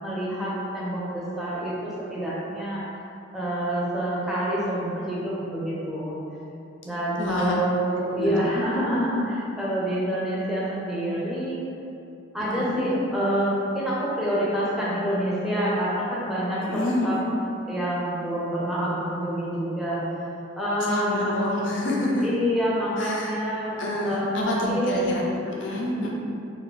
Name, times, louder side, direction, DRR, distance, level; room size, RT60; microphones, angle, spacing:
voice 1, 0.0-2.8 3.3-6.2 6.8-11.6 12.3-17.2 17.7-20.0 20.6-21.4 22.2-23.8 24.0-25.3 25.9-26.1, equal, ahead, -8 dB, 0.6 m, -27 dB
voice 2, 7.2-7.5 8.1-8.3 12.4-12.8 16.6-17.2 20.9-22.2 23.0-23.3 23.8-26.1, left 1 dB, 80° left, -3 dB, 0.6 m, -28 dB
2.5 x 2.3 x 3.8 m, 2.6 s
head